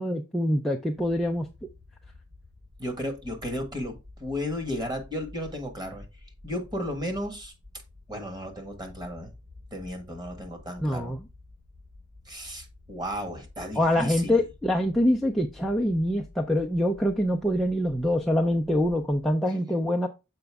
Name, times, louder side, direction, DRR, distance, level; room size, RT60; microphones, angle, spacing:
voice 1, 0.0-1.5 10.8-11.2 13.8-20.1, left 1 dB, ahead, 0.5 m, -25 dB
sound 1, 0.9-19.3, left 2 dB, 70° right, 2.5 m, -50 dB
voice 2, 2.8-6.1 6.4-7.5 8.1-9.3 9.7-11.1 12.3-14.4, equal, 20° right, 1.6 m, -34 dB
6.8 x 5.1 x 3.5 m
head